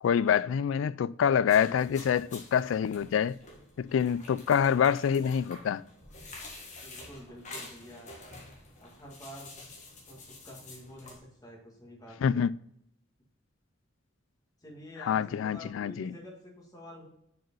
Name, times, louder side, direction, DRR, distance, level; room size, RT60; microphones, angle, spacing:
voice 1, 0.0-3.4 3.8-5.8 12.2-12.5 15.1-16.1, left 8 dB, 80° left, 0.3 m, -26 dB
sound 1, 1.5-11.2, left 2 dB, 40° left, 1.6 m, -48 dB
voice 2, 6.8-8.1 8.8-9.5 10.1-12.4 14.6-17.1, equal, 20° left, 1.9 m, -48 dB
6.1 x 4.9 x 5.4 m
head